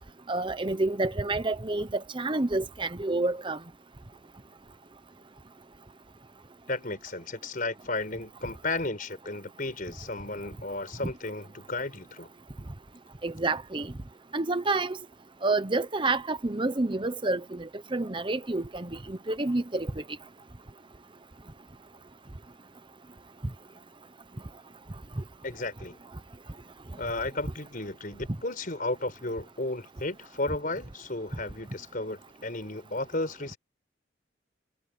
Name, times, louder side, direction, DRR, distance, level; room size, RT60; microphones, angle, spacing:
voice 1, 0.3-3.6 13.2-13.9 14.3-15.0 15.4-20.0 25.2-25.3, right 2 dB, 25° right, 0.9 m, -29 dB
voice 2, 6.7-12.3 25.4-26.0 27.0-33.6, left 2 dB, 45° left, 4.9 m, -34 dB
head